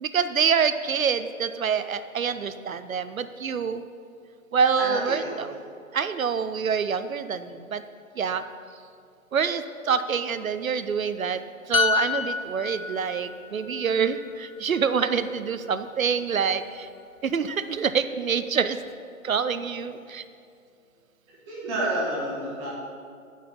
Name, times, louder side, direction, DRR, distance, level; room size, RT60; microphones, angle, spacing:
voice 1, 0.0-3.8 4.5-5.5 5.9-7.8 8.2-8.4 9.3-11.4 11.7-16.9 17.2-18.8 19.2-20.2, right 6 dB, 70° right, 11 dB, 0.6 m, -26 dB
voice 2, 4.8-5.6 21.4-22.7, right 1 dB, 15° right, -6 dB, 1.6 m, -30 dB
sound 1, 11.7-15.3 15.7-15.9, left 5 dB, 70° left, 0.8 m, -29 dB
7.2 x 5.7 x 7.2 m, 2.4 s
figure-of-eight pair, 140°, 43 cm